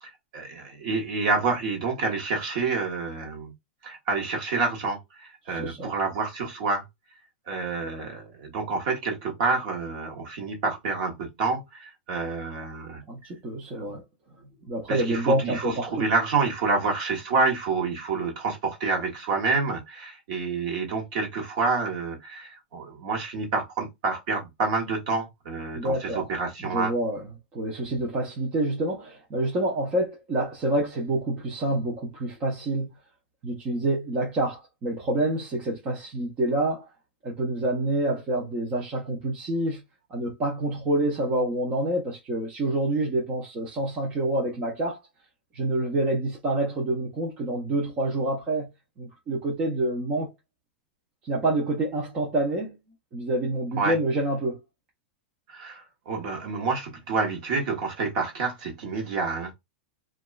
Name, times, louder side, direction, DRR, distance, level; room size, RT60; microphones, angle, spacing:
voice 1, 0.0-3.5 3.8-6.8 7.5-13.0 13.7-13.9 14.9-26.9 53.8-54.0 55.5-59.5, right 4 dB, 40° right, 0.9 m, -28 dB
voice 2, 5.5-5.9 13.1-14.0 14.7-16.1 25.7-26.3 26.6-27.2 27.5-32.9 33.4-36.9 37.2-39.8 40.1-45.0 45.5-48.7 49.0-50.3 51.2-52.8 53.1-54.6, right 1 dB, 20° right, 0.5 m, -27 dB
2.9 x 2.3 x 2.2 m
supercardioid pair, 180°, 6 cm